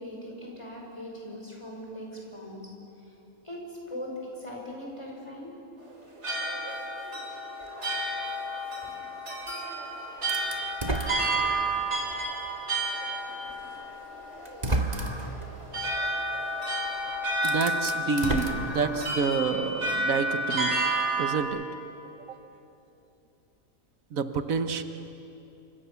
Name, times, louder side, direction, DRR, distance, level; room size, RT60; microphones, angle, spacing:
voice 1, 0.0-2.6 3.4-3.6 3.9-5.5 8.8-9.0 13.0-13.3 22.0-22.1, left 1 dB, 20° left, -2 dB, 5.8 m, -40 dB
sound 1, 5.9-21.4, right 1 dB, 55° right, 3.9 m, -31 dB
sound 2, 10.3-11.9 12.5-12.6 13.8-13.9 14.4-15.4 16.9-17.0 17.3-19.3, right 2 dB, 30° right, 1.8 m, -32 dB
voice 2, 17.4-20.8 21.2-21.6 24.1-24.8, right 5 dB, 80° right, 9 dB, 1.5 m, -28 dB
28.0 x 25.5 x 7.0 m, 2.9 s
omnidirectional pair, 1.4 m